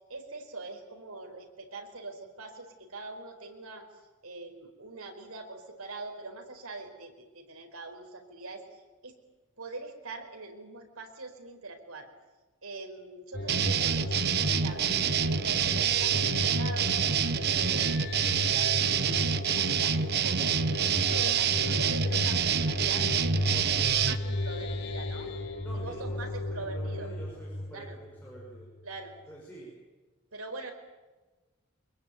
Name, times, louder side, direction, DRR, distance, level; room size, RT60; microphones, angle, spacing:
voice 1, 0.1-3.8 4.2-9.1 9.6-12.1 12.6-14.9 15.3-17.1 17.4-23.3 23.8-25.3 25.7-27.1 27.7-27.9 28.8-29.2 30.3-30.7, right 3 dB, 85° right, 4 dB, 4.8 m, -43 dB
sound 1, 13.3-28.8, left 1 dB, 55° left, 3.0 m, -35 dB
sound 2, 13.5-24.2, right 7 dB, 50° right, 1.0 m, -27 dB
voice 2, 23.3-23.8 25.6-28.7 29.3-29.7, right 1 dB, 10° left, -4 dB, 5.6 m, -47 dB
24.5 x 22.0 x 9.3 m, 1.2 s
head